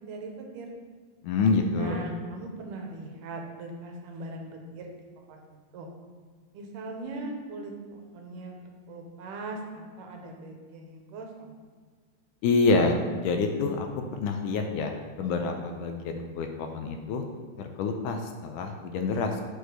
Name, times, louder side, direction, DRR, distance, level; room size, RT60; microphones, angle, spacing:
voice 1, 0.1-0.7 1.7-5.4 5.7-5.9 6.5-8.6 8.9-11.5, right 2 dB, 75° right, 2 dB, 2.5 m, -40 dB
voice 2, 1.2-2.0 12.4-17.2 17.6-19.4, left 3 dB, 75° left, 4 dB, 2.0 m, -27 dB
6.2 x 4.9 x 6.7 m, 1.5 s
omnidirectional pair, 3.9 m